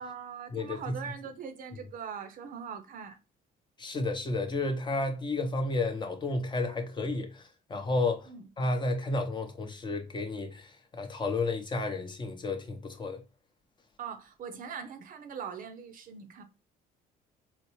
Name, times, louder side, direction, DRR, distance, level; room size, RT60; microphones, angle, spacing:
voice 1, 0.0-3.2 8.3-8.5 14.0-16.4, right 7 dB, 55° right, 0.6 m, -41 dB
voice 2, 0.5-1.0 3.8-7.4 7.7-8.3 8.6-13.2, left 2 dB, 25° left, 0.7 m, -32 dB
4.0 x 2.0 x 3.0 m
cardioid pair, 110°, 17 cm